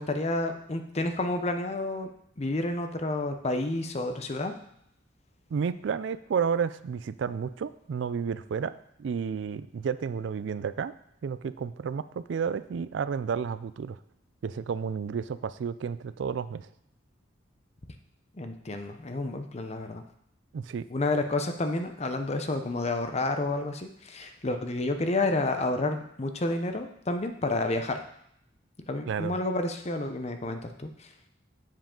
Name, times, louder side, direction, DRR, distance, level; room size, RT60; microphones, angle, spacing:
voice 1, 0.0-2.1 2.4-4.5 18.4-20.0 20.9-28.0 28.9-31.1, left 2 dB, 35° left, 7 dB, 0.7 m, -30 dB
voice 2, 5.5-8.7 9.0-10.9 11.2-14.0 14.4-16.7 20.5-20.9 29.1-29.3, right 6 dB, 65° right, 15 dB, 0.3 m, -31 dB
7.4 x 7.3 x 3.8 m, 0.72 s
head